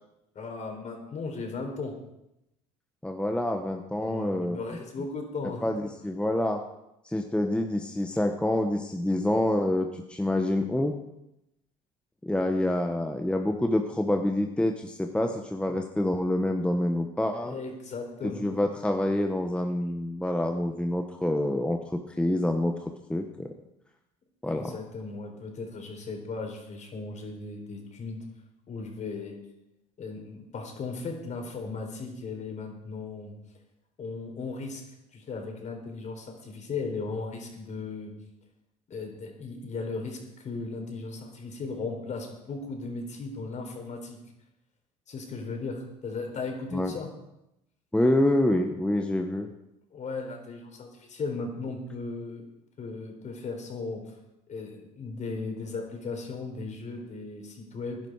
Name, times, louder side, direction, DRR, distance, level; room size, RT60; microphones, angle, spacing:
voice 1, 0.3-1.9 4.0-5.6 17.4-18.4 24.5-28.2 28.7-29.4 30.0-33.3 34.0-34.8 35.1-38.1 38.9-44.2 45.1-47.1 49.9-52.4 52.8-54.0 54.5-58.0, left 3 dB, 45° left, 3 dB, 4.3 m, -36 dB
voice 2, 3.0-4.6 5.6-6.6 7.0-10.9 12.2-17.5 18.2-23.5 24.4-24.7 46.7-46.9 47.9-49.5, left 1 dB, 5° left, 4 dB, 1.2 m, -27 dB
17.0 x 10.5 x 4.8 m, 0.87 s
supercardioid pair, 80°, 17 cm